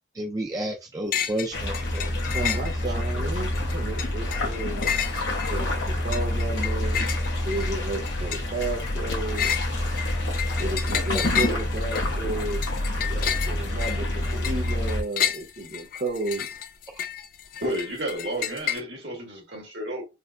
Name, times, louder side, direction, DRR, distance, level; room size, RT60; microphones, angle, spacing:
voice 1, 0.1-2.1 2.4-2.6 2.9-3.3 11.1-11.2 16.9-17.0, right 1 dB, 20° right, 0.4 m, -32 dB
sound 1, 1.1-1.5 1.7-3.1 3.5-18.8, left 9 dB, 50° left, 0.4 m, -31 dB
sound 2, 1.5-15.0, left 1 dB, 85° left, 1.0 m, -27 dB
voice 2, 2.3-4.9 5.5-9.5 10.6-12.6 12.9-16.5, right 2 dB, 50° right, 1.0 m, -33 dB
voice 3, 17.6-20.1, right 1 dB, 70° right, 1.6 m, -31 dB
4.2 x 2.1 x 2.5 m
head